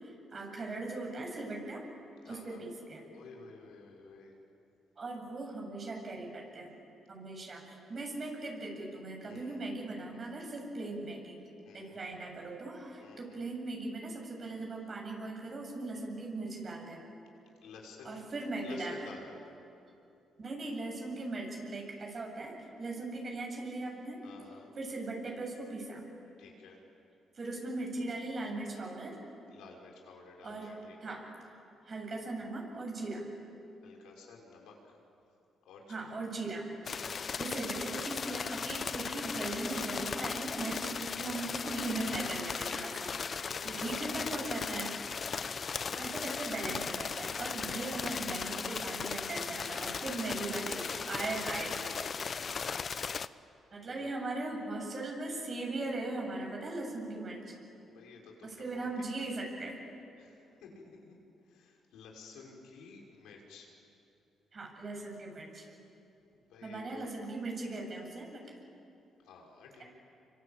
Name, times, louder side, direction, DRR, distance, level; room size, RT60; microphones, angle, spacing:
voice 1, 0.0-1.8 2.3-3.0 5.0-6.7 7.1-11.4 11.7-17.0 18.0-19.1 20.4-24.2 24.8-26.1 27.3-29.2 30.4-30.7 31.0-31.2 31.8-33.3 35.9-36.7 37.2-45.0 45.9-51.8 53.7-57.5 58.4-59.8 64.5-65.7 66.6-68.5, right 2 dB, 40° right, 0 dB, 7.9 m, -39 dB
voice 2, 2.2-2.6 3.1-4.4 9.3-9.6 11.6-12.0 13.0-13.4 17.6-18.2 18.6-19.4 24.2-24.7 26.4-26.8 29.5-31.2 33.8-34.8 35.7-36.2 41.2-41.4 43.4-44.7 45.2-45.6 50.1-52.7 53.9-54.1 57.8-58.9 60.2-61.2 61.5-63.7 66.2-67.2 69.2-69.8, left 4 dB, 85° left, 0 dB, 5.8 m, -53 dB
sound 1, 36.8-53.3, left 6 dB, 45° left, 0.7 m, -37 dB
27.5 x 25.0 x 8.7 m, 2.7 s
cardioid pair, 90°, 0 cm